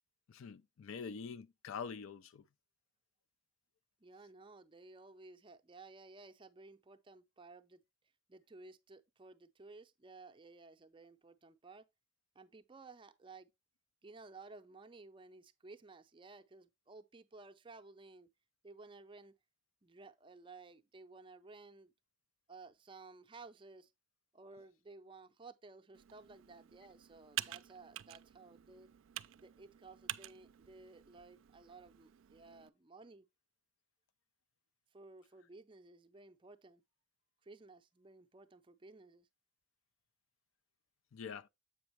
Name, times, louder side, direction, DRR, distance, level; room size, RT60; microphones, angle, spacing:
voice 1, 0.3-2.4 41.1-41.5, left 6 dB, 80° left, 0.4 m, -45 dB
voice 2, 4.0-7.8 8.3-11.9 12.3-13.5 14.0-18.3 18.6-19.4 19.8-21.9 22.5-23.9 24.3-28.9 29.3-33.3 34.9-36.8 37.4-39.3, right 3 dB, 25° right, 0.5 m, -56 dB
Computer keyboard, 25.9-32.7, right 13 dB, 75° right, 0.4 m, -48 dB
7.9 x 6.0 x 3.0 m
head